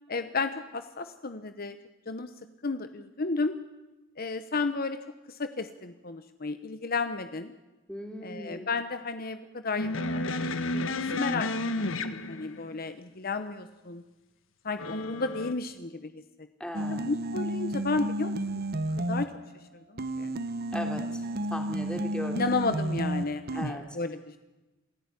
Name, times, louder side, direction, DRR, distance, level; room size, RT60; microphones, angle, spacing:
voice 1, 0.1-1.8 2.1-2.3 2.6-3.5 4.2-5.0 5.3-7.5 8.2-11.5 11.8-14.0 14.6-16.1 16.9-18.6 19.1-20.3 22.3-24.4, left 3 dB, 50° left, 10 dB, 1.0 m, -33 dB
voice 2, 7.9-8.7 16.6-17.1 20.7-21.2 21.5-22.5 23.5-23.8, equal, 5° left, 3 dB, 3.4 m, -37 dB
sound 1, 9.8-12.7 14.8-15.5, left 2 dB, 80° left, 1.5 m, -31 dB
sound 2, 16.7-19.5 20.0-23.7, right 1 dB, 50° right, 1.0 m, -32 dB
27.5 x 16.0 x 9.8 m, 1.1 s
head